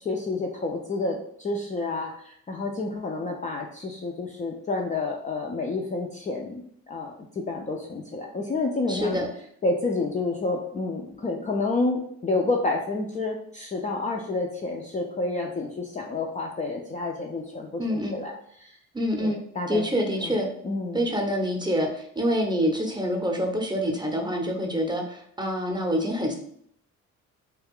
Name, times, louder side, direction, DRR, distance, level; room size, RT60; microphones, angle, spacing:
voice 1, 0.0-9.2 9.6-18.3 18.6-18.8 19.2-19.8 20.2-20.3 20.6-21.1, left 3 dB, 20° left, 0 dB, 0.3 m, -29 dB
voice 2, 8.9-9.3 17.8-18.2 18.9-19.4 19.7-20.5 20.9-26.3, equal, 10° right, 1 dB, 0.7 m, -26 dB
2.4 x 2.3 x 3.5 m, 0.68 s
supercardioid pair, 65°, 36 cm